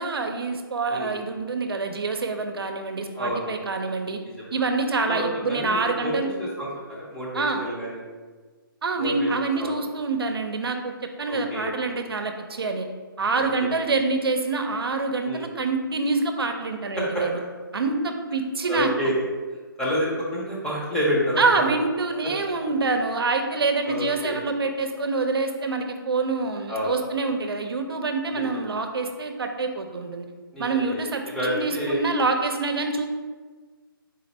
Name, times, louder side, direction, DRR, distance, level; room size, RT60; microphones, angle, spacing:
voice 1, 0.0-4.2 4.5-6.3 7.3-7.6 8.8-12.9 13.2-17.4 17.7-19.1 21.4-30.3 30.6-31.2 31.5-33.1, right 3 dB, 80° right, 5 dB, 0.5 m, -26 dB
voice 2, 3.2-3.5 4.4-4.5 5.1-6.1 6.4-8.0 9.0-9.3 9.6-9.7 11.3-11.7 13.3-13.7 15.2-15.4 17.0-17.2 18.7-19.3 19.8-21.7 23.9-24.4 26.7-26.9 28.3-28.6 30.5-31.0 31.3-32.0, equal, 5° left, -6 dB, 0.6 m, -28 dB
3.9 x 2.5 x 4.1 m, 1.4 s
hypercardioid pair, 155°, 12 cm